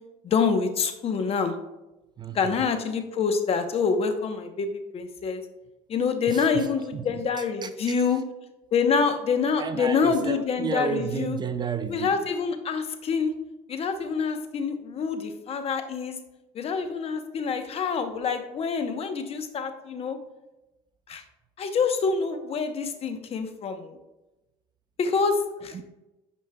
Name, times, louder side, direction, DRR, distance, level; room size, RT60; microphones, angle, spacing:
voice 1, 0.2-1.5 2.3-5.4 5.9-8.2 8.7-11.4 11.9-13.3 13.7-16.2 16.5-20.2 21.1-21.2 21.6-24.0 25.0-25.8, left 5 dB, 45° left, 0.9 m, -26 dB
voice 2, 2.2-2.7 6.3-6.7 6.9-8.0 9.6-12.2 25.7-25.8, right 6 dB, 30° right, 0.4 m, -32 dB
9.3 x 5.1 x 2.3 m
cardioid pair, 110°, 15 cm